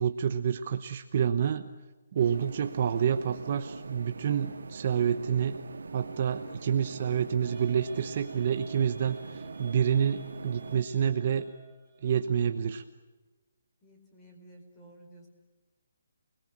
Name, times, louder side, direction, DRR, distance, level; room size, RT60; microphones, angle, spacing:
voice 1, 0.0-1.7 2.1-5.6 5.9-11.4 12.0-12.8, right 8 dB, 35° right, 9 dB, 0.9 m, -28 dB
sound 1, 2.2-10.8, right 4 dB, 80° right, 1.8 m, -43 dB
sound 2, 7.4-12.5, right 6 dB, 10° right, 5.5 m, -55 dB
voice 2, 13.8-15.3, right 1 dB, 10° left, 1 dB, 4.9 m, -54 dB
29.0 x 21.0 x 8.7 m, 1.2 s
hypercardioid pair, 175°, 0 cm